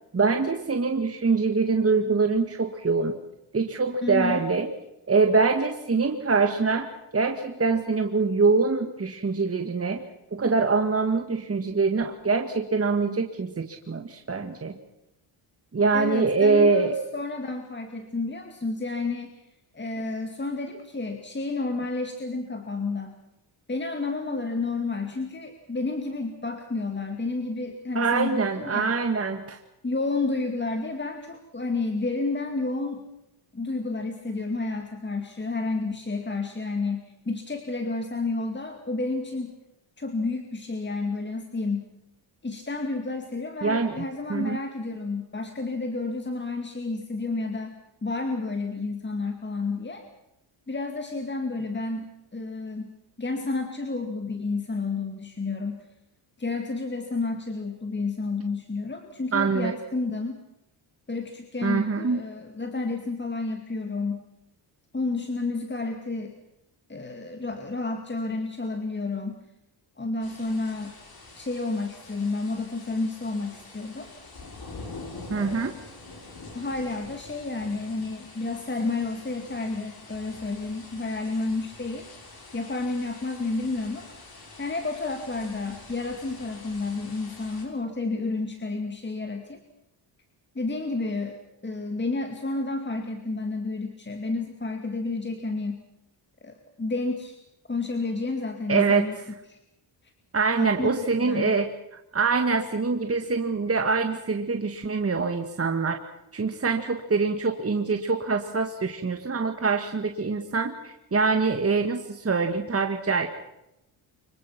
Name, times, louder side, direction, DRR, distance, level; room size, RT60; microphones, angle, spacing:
voice 1, 0.1-3.1 3.5-4.7 5.1-10.0 10.3-14.8 15.7-16.9 28.0-29.6 43.6-43.9 44.3-44.6 59.3-59.7 61.6-62.2 75.3-75.7 98.7-99.1 100.3-101.7 102.1-106.0 106.3-113.3, right 4 dB, 30° right, 5 dB, 1.9 m, -24 dB
voice 2, 4.0-4.4 15.9-19.4 19.7-23.2 23.7-28.9 29.8-33.0 33.5-39.6 40.0-41.9 42.4-47.7 48.0-50.0 50.7-52.9 53.2-55.8 56.4-60.4 61.1-64.2 64.9-66.4 66.9-69.4 70.0-70.9 71.4-74.1 75.4-75.8 76.5-82.1 82.5-84.1 84.6-89.6 90.5-91.4 91.6-95.8 96.4-97.4 97.7-99.2 99.5-99.6 100.6-101.5, left 3 dB, 25° left, 5 dB, 2.3 m, -30 dB
sound 1, 70.2-87.6, left 3 dB, 50° left, 6.8 m, -46 dB
25.5 x 23.0 x 6.0 m, 0.85 s
cardioid pair, 85°, 47 cm